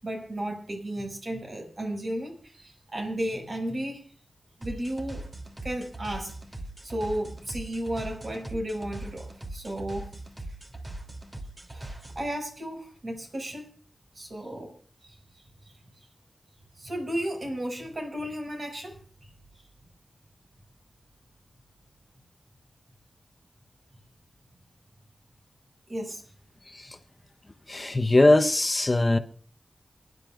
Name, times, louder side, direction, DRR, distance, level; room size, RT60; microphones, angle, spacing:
voice 1, 0.0-4.0 4.6-5.2 5.6-6.3 6.8-10.1 11.7-13.7 14.1-14.7 15.0-15.1 16.7-18.9 25.9-26.2, right 1 dB, 55° right, 6.2 m, -33 dB
sound 1, 4.6-12.3, right 1 dB, 30° right, 3.0 m, -40 dB
voice 2, 26.7-27.0 27.7-29.2, left 2 dB, 35° left, 1.0 m, -21 dB
29.0 x 11.0 x 2.5 m
wide cardioid pair, 75°, 0 cm